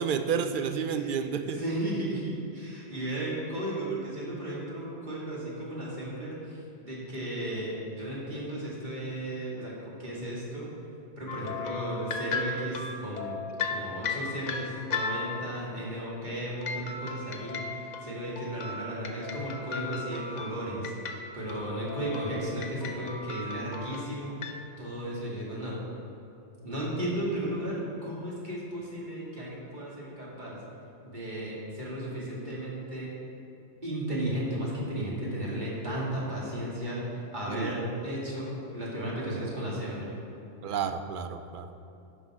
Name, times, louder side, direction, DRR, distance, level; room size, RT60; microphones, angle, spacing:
voice 1, 0.0-1.6 37.5-37.7 40.6-41.7, right 7 dB, 55° right, 9 dB, 0.6 m, -30 dB
voice 2, 1.4-10.7 11.2-13.4 13.7-20.9 21.3-25.8 26.6-30.6 31.0-33.1 33.8-40.2, right 1 dB, 40° right, -6 dB, 2.4 m, -34 dB
sound 1, 11.3-15.7 16.6-24.6, left 4 dB, 45° left, 0.6 m, -36 dB
11.0 x 6.4 x 4.8 m, 2.8 s
omnidirectional pair, 1.2 m